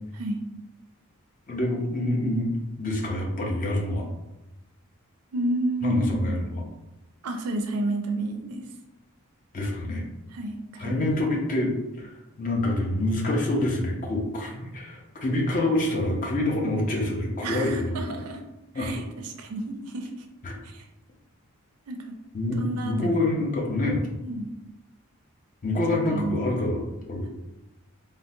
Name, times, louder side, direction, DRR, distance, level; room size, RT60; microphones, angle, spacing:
voice 1, 1.5-2.5 2.8-4.1 5.8-6.4 9.5-10.0 10.8-11.7 12.0-12.1 12.4-18.0 18.7-19.0 20.4-20.5 22.3-22.6 22.8-24.0 25.6-26.8 27.1-27.3, left 1 dB, 35° left, 0 dB, 0.5 m, -26 dB
voice 2, 5.3-6.4 7.2-8.7 10.3-10.9 11.2-11.3 17.4-18.4 18.7-20.1 20.6-20.9 21.9-22.2 22.6-23.3 24.2-24.5 25.9-26.5, right 1 dB, 80° right, 5 dB, 0.4 m, -31 dB
3.6 x 2.1 x 2.6 m, 0.94 s
head